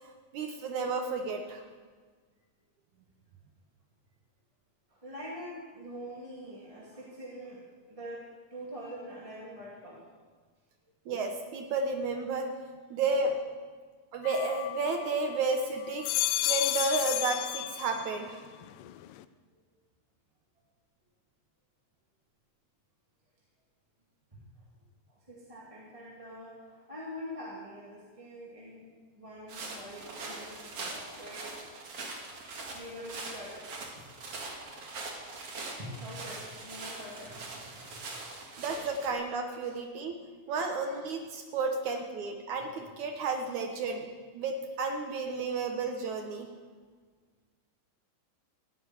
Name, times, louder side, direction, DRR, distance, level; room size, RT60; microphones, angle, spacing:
voice 1, 0.3-1.6 11.1-12.5 12.9-13.3 14.1-16.1 16.5-18.4 38.6-40.2 40.5-44.1 44.3-46.5, right 3 dB, 65° right, 4 dB, 2.3 m, -32 dB
voice 2, 4.9-10.1 24.3-24.4 25.1-31.5 32.7-33.6 35.8-38.0 39.6-39.7 40.2-40.3, equal, 10° right, -5 dB, 2.2 m, -45 dB
sound 1, 14.2-15.4 15.8-18.3 18.6-19.2, left 15 dB, 80° left, 2.2 m, -32 dB
sound 2, 29.5-39.1, right 3 dB, 45° right, 2.8 m, -42 dB
16.0 x 7.8 x 9.7 m, 1.5 s
omnidirectional pair, 3.9 m